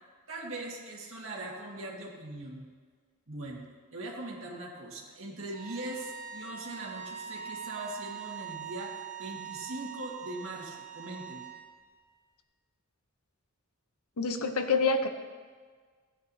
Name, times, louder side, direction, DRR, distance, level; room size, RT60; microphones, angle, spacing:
voice 1, 0.3-2.7 3.3-3.7 3.9-11.5, right 2 dB, 65° right, -3 dB, 1.8 m, -41 dB
sound 1, 5.5-11.6, right 8 dB, 5° right, 1.9 m, -42 dB
voice 2, 14.2-15.1, left 4 dB, 80° left, 7 dB, 0.8 m, -27 dB
14.0 x 8.8 x 2.8 m, 1.6 s
head